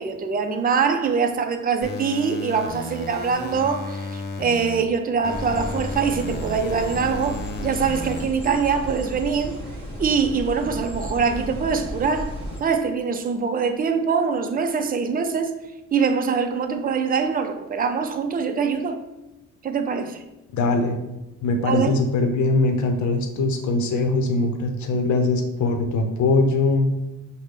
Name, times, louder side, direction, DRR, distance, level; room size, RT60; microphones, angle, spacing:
voice 1, 0.0-9.5 10.0-12.3 12.6-15.5 15.9-19.0 19.6-20.2 21.6-21.9, right 5 dB, 30° right, 0.5 m, -23 dB
sound 1, 1.8-4.8 5.2-8.2, left 2 dB, 35° left, 0.7 m, -33 dB
sound 2, 5.3-12.6, equal, 20° left, 1.2 m, -34 dB
voice 2, 20.5-21.0 21.4-26.9, left 3 dB, 70° left, 0.8 m, -21 dB
5.6 x 2.2 x 3.3 m
cardioid pair, 90°, 30 cm